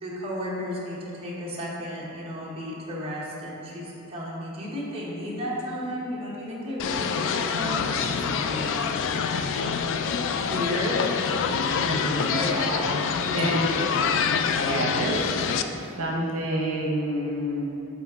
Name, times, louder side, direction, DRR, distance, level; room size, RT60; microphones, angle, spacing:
voice 1, 0.0-8.9 10.4-11.0 12.3-13.4 13.7-14.0, equal, 25° right, -6 dB, 1.0 m, -33 dB
sound 1, 6.8-15.6, left 6 dB, 60° left, 0.3 m, -26 dB
voice 2, 11.8-12.5 13.3-13.6 14.5-15.3 15.9-17.7, right 1 dB, 70° right, -2 dB, 0.8 m, -28 dB
8.1 x 3.5 x 3.6 m, 2.9 s
head